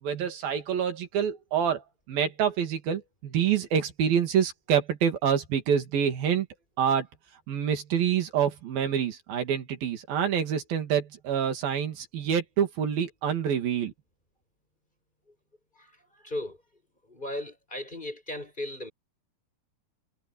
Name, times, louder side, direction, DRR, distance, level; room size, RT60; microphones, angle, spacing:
voice 1, 0.0-6.5 6.8-7.1 7.5-13.9, right 8 dB, 85° right, 4.4 m, -27 dB
voice 2, 15.7-16.6 17.0-18.9, left 1 dB, 10° left, 7.2 m, -37 dB
omnidirectional pair, 4.0 m